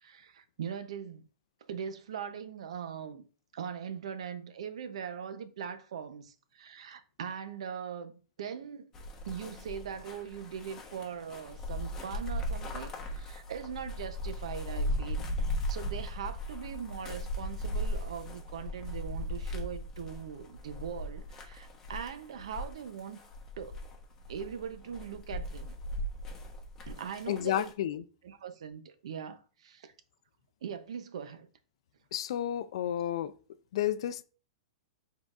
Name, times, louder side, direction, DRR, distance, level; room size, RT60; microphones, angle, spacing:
voice 1, 0.0-1.2 1.7-3.2 3.5-8.1 8.4-8.9 9.3-23.2 23.6-23.8 24.3-25.8 26.9-27.7 28.2-29.9 30.6-31.5, right 7 dB, 75° right, 0.7 m, -41 dB
sound 1, 8.9-27.7, equal, 15° left, 1.0 m, -38 dB
voice 2, 27.3-28.0 32.1-33.3 33.7-34.2, left 11 dB, 60° left, 0.4 m, -31 dB
5.1 x 3.8 x 2.5 m
supercardioid pair, 160°, 3 cm